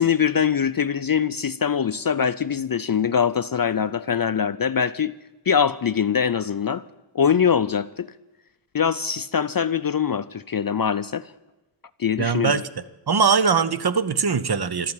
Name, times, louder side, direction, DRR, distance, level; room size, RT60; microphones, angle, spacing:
voice 1, 0.0-5.1 5.5-6.8 7.1-8.1 8.7-11.3 12.0-12.6, left 7 dB, 45° left, 0.5 m, -23 dB
voice 2, 12.2-12.6 13.1-14.9, right 5 dB, 50° right, 0.9 m, -21 dB
13.5 x 11.5 x 9.0 m
wide cardioid pair, 70°, 50 cm